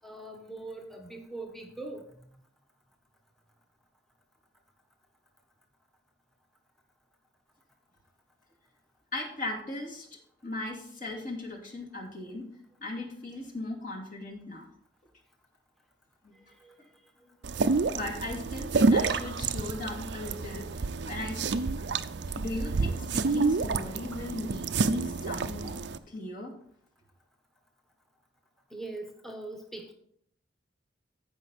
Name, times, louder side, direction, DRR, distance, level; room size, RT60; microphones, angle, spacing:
voice 1, 0.0-2.1 16.6-16.8 28.7-29.9, right 2 dB, ahead, 3 dB, 1.1 m, -41 dB
voice 2, 9.1-10.1 10.4-12.4 12.8-14.6 16.2-16.4 16.8-16.9 17.9-21.7 22.4-25.8 26.1-26.5, left 2 dB, 45° left, -1 dB, 2.5 m, -38 dB
sound 1, 17.4-26.0, right 4 dB, 65° right, 0.5 m, -29 dB
14.0 x 5.4 x 4.2 m, 0.65 s
head